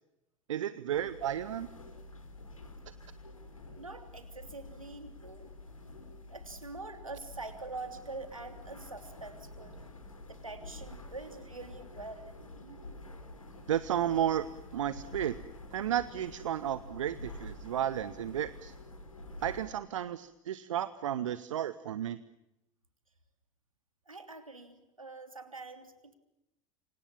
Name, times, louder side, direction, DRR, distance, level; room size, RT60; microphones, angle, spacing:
voice 1, 0.5-1.7 12.6-12.9 13.7-14.5 14.7-15.4 15.7-18.7 19.4-22.2, right 10 dB, 65° right, 16 dB, 1.0 m, -33 dB
sound 1, 0.9-19.7, left 2 dB, 80° left, 4.4 m, -48 dB
voice 2, 3.8-5.5 6.3-9.8 10.3-12.4 24.0-26.1, right 3 dB, 85° right, 8 dB, 3.2 m, -45 dB
28.5 x 25.5 x 7.2 m, 0.90 s
figure-of-eight pair, 75°, 17 cm